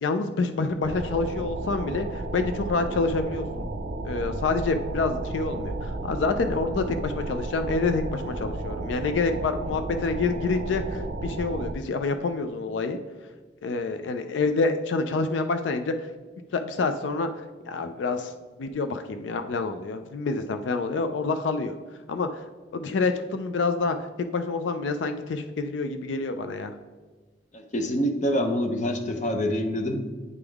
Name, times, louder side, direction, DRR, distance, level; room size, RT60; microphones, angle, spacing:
voice 1, 0.0-3.7 4.0-13.0 13.6-16.1 16.5-18.3 18.6-21.7 22.1-22.4 22.7-26.7, left 3 dB, 90° left, 8 dB, 0.4 m, -27 dB
sound 1, 0.8-11.7, right 2 dB, 85° right, 0.5 m, -33 dB
voice 2, 27.5-30.1, equal, 40° left, 5 dB, 0.7 m, -26 dB
9.5 x 3.5 x 3.4 m, 1.4 s
head